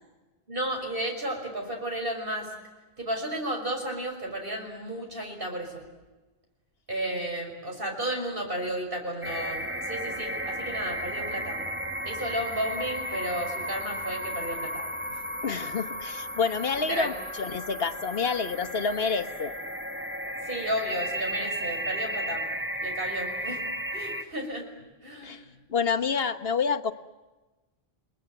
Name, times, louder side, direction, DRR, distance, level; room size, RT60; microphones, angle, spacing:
voice 1, 0.5-2.5 3.0-5.8 6.9-11.6 12.0-15.3 16.7-17.1 20.4-22.5 22.8-23.6 23.9-24.7 25.0-25.4, right 1 dB, 60° right, 2 dB, 6.2 m, -33 dB
sound 1, 9.2-24.2, equal, 10° right, 1.5 m, -34 dB
voice 2, 15.4-17.1 17.4-19.5 25.2-25.4 25.7-26.9, left 5 dB, 70° left, 8 dB, 1.4 m, -28 dB
30.0 x 20.5 x 9.1 m, 1.2 s
omnidirectional pair, 1.0 m